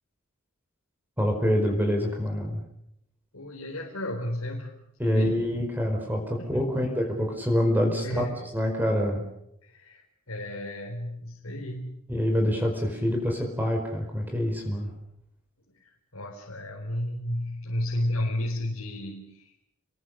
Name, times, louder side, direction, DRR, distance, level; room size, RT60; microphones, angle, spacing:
voice 1, 1.2-2.6 5.0-8.3 8.5-9.2 12.1-14.9, equal, 10° right, 2 dB, 4.7 m, -26 dB
voice 2, 3.3-5.4 6.4-6.7 8.0-8.5 9.6-10.0 10.3-12.1 15.7-19.5, left 1 dB, 85° left, -1 dB, 4.5 m, -33 dB
29.5 x 22.0 x 6.6 m, 0.77 s
head